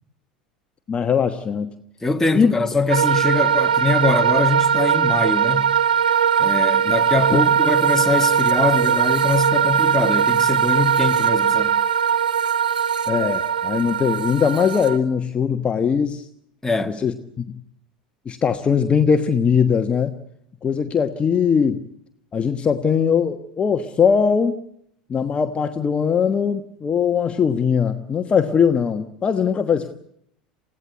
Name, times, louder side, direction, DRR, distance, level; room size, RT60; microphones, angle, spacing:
voice 1, 0.9-1.7 2.3-2.5 13.1-16.2 17.0-17.6 18.2-20.1 20.6-21.8 22.3-24.6 25.1-29.9, left 6 dB, 25° left, 1.3 m, -20 dB
voice 2, 2.0-5.7 6.4-11.8 16.6-17.0, left 3 dB, 10° left, 1.8 m, -23 dB
sound 1, 2.9-15.0, right 8 dB, 75° right, 1.4 m, -19 dB
29.0 x 16.5 x 8.1 m
figure-of-eight pair, 80°, 5 cm